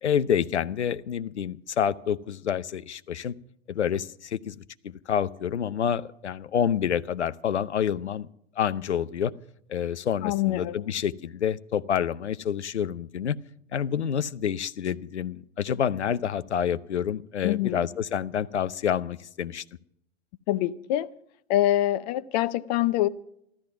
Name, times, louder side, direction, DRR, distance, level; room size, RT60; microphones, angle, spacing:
voice 1, 0.0-3.3 3.7-4.6 4.8-8.3 8.6-9.3 9.7-13.4 13.7-19.6, left 8 dB, 75° left, 15 dB, 0.7 m, -28 dB
voice 2, 10.2-10.8 17.4-17.8 20.5-21.1 21.5-23.1, left 14 dB, 35° left, 15 dB, 0.6 m, -25 dB
14.0 x 13.0 x 5.9 m, 0.73 s
figure-of-eight pair, 95°, 35 cm